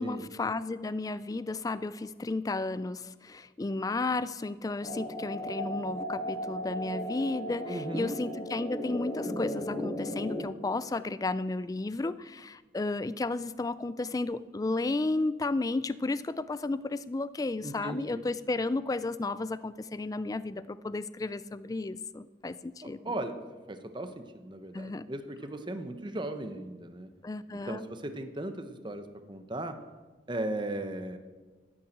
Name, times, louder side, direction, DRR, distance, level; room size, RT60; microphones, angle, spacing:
voice 1, 0.0-23.1 24.7-25.1 27.2-27.8, left 2 dB, 20° left, 16 dB, 0.3 m, -33 dB
sound 1, 4.8-10.4, equal, 40° left, 3.6 m, -36 dB
voice 2, 7.7-8.2 17.6-18.2 23.0-23.4 23.7-27.1 27.7-29.8 30.3-31.2, right 1 dB, 25° right, 8 dB, 0.9 m, -37 dB
13.5 x 8.7 x 6.5 m, 1.3 s
head